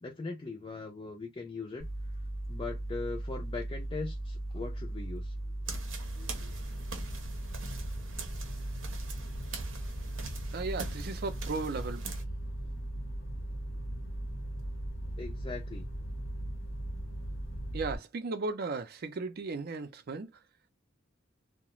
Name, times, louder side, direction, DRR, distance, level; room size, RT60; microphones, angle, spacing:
voice 1, 0.0-1.9 2.5-5.3 15.2-15.9, left 3 dB, 25° left, 0.4 m, -40 dB
sound 1, 1.8-18.0, right 1 dB, 90° left, 0.8 m, -38 dB
sound 2, 5.6-12.2, right 3 dB, 80° right, 0.7 m, -43 dB
voice 2, 10.5-12.0 17.7-20.3, right 3 dB, 50° right, 0.5 m, -35 dB
2.4 x 2.1 x 2.9 m
head